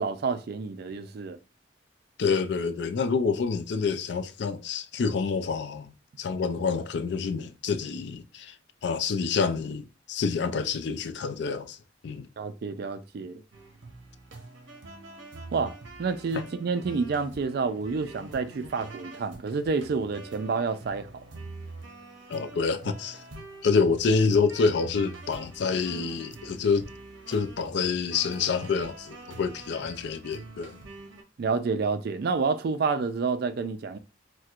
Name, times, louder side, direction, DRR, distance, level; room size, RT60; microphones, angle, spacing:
voice 1, 0.0-1.4 12.4-13.4 15.5-21.1 31.4-34.0, right 4 dB, 55° right, 0.3 m, -29 dB
voice 2, 2.2-5.9 6.2-8.6 8.8-11.8 12.0-12.3 16.3-16.4 22.3-23.2 23.6-26.9 27.3-30.8, left 5 dB, 60° left, 0.4 m, -27 dB
sound 1, 13.5-31.2, right 2 dB, 70° right, 0.8 m, -45 dB
4.3 x 2.1 x 2.4 m
head